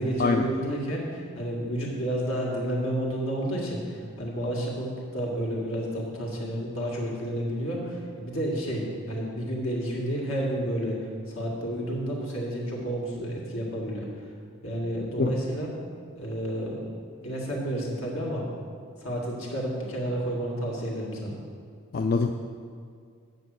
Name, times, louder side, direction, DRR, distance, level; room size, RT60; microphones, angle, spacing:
voice 1, 0.0-11.0 11.4-14.1 14.6-15.7 16.1-18.5 19.0-21.4, right 1 dB, 75° left, -3 dB, 2.1 m, -30 dB
voice 2, 21.9-22.3, left 4 dB, 45° left, 5 dB, 0.3 m, -24 dB
8.8 x 5.3 x 7.7 m, 2.1 s
head